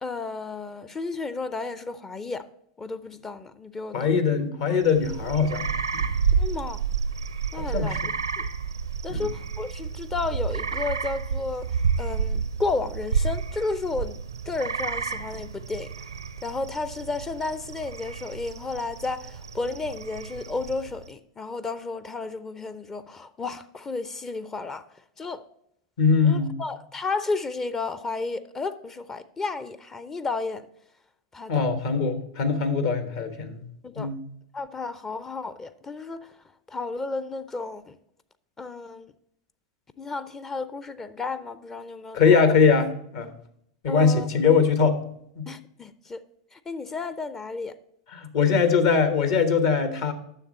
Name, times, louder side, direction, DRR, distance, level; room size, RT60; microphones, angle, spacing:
voice 1, 0.0-2.4 2.8-4.1 6.3-6.8 7.5-8.0 8.4-8.5 9.0-11.7 12.0-14.2 14.5-15.9 16.4-24.8 25.2-25.4 26.2-30.7 31.3-31.6 33.8-34.1 34.5-36.3 36.7-38.0 38.6-39.1 40.0-42.2 43.9-44.3 45.5-46.2 46.5-47.8, left 3 dB, 20° left, 0.5 m, -32 dB
voice 2, 3.9-6.1 7.7-8.1 9.1-9.3 26.0-26.6 31.5-33.7 34.0-34.2 42.1-43.3 43.8-45.0 45.4-45.5 48.1-50.1, left 5 dB, 60° left, 1.2 m, -22 dB
sound 1, 4.8-21.0, right 6 dB, 90° right, 0.6 m, -30 dB
9.8 x 6.8 x 4.2 m
hypercardioid pair, 90°, 2 cm